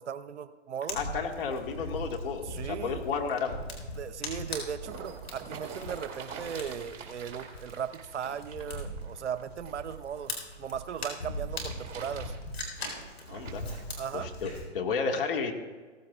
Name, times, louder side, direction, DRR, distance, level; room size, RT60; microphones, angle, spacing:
voice 1, 0.0-1.0 2.4-3.0 4.0-12.4 14.0-14.3, right 8 dB, 65° right, 13 dB, 0.8 m, -37 dB
Fire, 0.9-14.6, left 1 dB, 75° left, 4.3 m, -40 dB
voice 2, 0.9-3.6 13.3-13.6 14.1-15.5, left 5 dB, 50° left, 3 dB, 1.9 m, -32 dB
sound 1, 4.6-10.4 11.3-13.8 14.5-14.6, right 5 dB, 25° right, 2.1 m, -46 dB
17.0 x 15.5 x 2.4 m, 1.4 s
hypercardioid pair, 130°, 36 cm